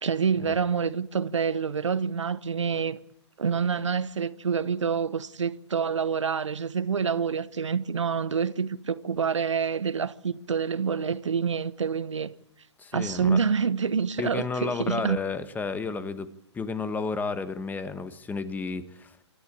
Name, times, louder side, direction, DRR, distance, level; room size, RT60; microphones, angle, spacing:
voice 1, 0.0-3.0 3.4-12.3 12.9-15.2, right 6 dB, 80° right, 1.0 m, -27 dB
voice 2, 12.8-13.4 14.2-16.3 16.5-19.1, left 4 dB, 10° left, 1.3 m, -32 dB
25.0 x 13.0 x 8.7 m
hypercardioid pair, 125°, 15 cm